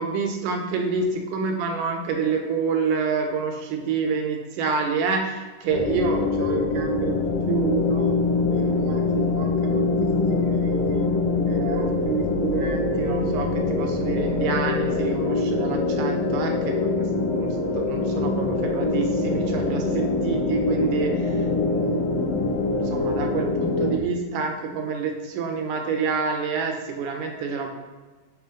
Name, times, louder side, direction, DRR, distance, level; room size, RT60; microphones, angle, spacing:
voice 1, 0.0-7.2 7.5-8.2 8.5-11.1 11.5-17.5 17.7-22.4 22.8-27.7, right 5 dB, 75° right, 3 dB, 2.4 m, -28 dB
sound 1, 5.7-24.0, left 3 dB, 85° left, 1.4 m, -24 dB
9.3 x 3.4 x 5.1 m, 1.3 s
omnidirectional pair, 3.8 m